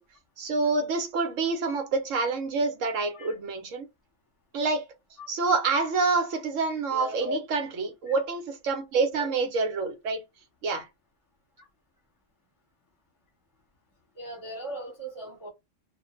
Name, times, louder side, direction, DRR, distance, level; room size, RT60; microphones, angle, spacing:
voice 1, 0.4-3.8 4.5-4.9 5.3-10.2 10.6-10.9, right 4 dB, 70° right, 1.1 m, -27 dB
voice 2, 6.9-7.4 14.1-15.5, equal, 15° left, 1.1 m, -37 dB
2.5 x 2.2 x 3.0 m
omnidirectional pair, 1.4 m